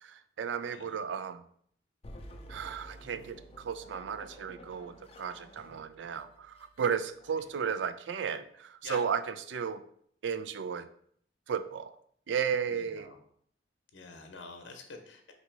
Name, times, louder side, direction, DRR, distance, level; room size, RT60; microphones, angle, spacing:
voice 1, 0.0-1.4 2.5-9.8 10.2-10.9 11.5-11.9 12.3-13.1, right 7 dB, 75° right, 11 dB, 0.4 m, -34 dB
sound 1, 2.0-7.5, equal, 30° left, 0.5 m, -51 dB
voice 2, 12.7-13.2 13.9-15.3, left 3 dB, 75° left, 4 dB, 0.8 m, -47 dB
4.0 x 2.8 x 4.4 m, 0.63 s
head